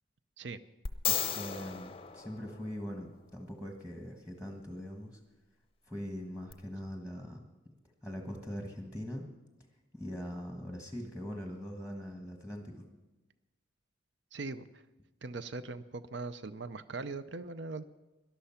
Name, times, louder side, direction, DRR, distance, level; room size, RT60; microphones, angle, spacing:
sound 1, 0.9-3.1 6.5-6.6, left 9 dB, 30° left, 0.6 m, -35 dB
voice 1, 1.0-5.1 5.9-7.4 8.0-9.2 9.9-12.9, equal, 5° right, 3 dB, 1.3 m, -42 dB
voice 2, 14.3-14.8 15.2-17.8, right 3 dB, 65° right, 14 dB, 0.6 m, -40 dB
18.5 x 12.0 x 5.8 m, 1.1 s
head